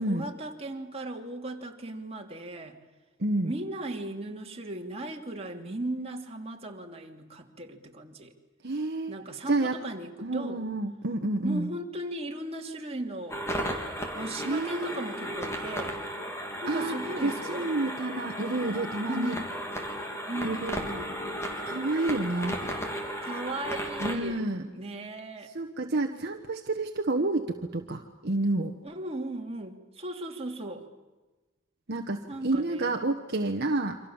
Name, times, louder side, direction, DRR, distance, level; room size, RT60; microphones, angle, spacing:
voice 1, 0.0-2.8 3.4-8.3 9.1-10.7 11.4-13.5 14.1-16.0 16.6-17.7 19.0-19.5 20.3-21.2 23.2-24.4 24.8-25.5 28.8-30.9 32.3-32.9, right 1 dB, 30° right, 1 dB, 2.9 m, -37 dB
voice 2, 3.2-3.5 8.6-9.2 9.5-9.8 10.2-11.7 14.4-15.2 16.7-19.4 20.4-20.8 21.7-22.6 24.0-24.6 25.5-28.7 31.9-34.0, right 2 dB, 55° right, 4 dB, 1.4 m, -29 dB
sound 1, 13.3-24.2, equal, 15° left, 3.6 m, -35 dB
28.5 x 25.5 x 7.3 m, 1.2 s
head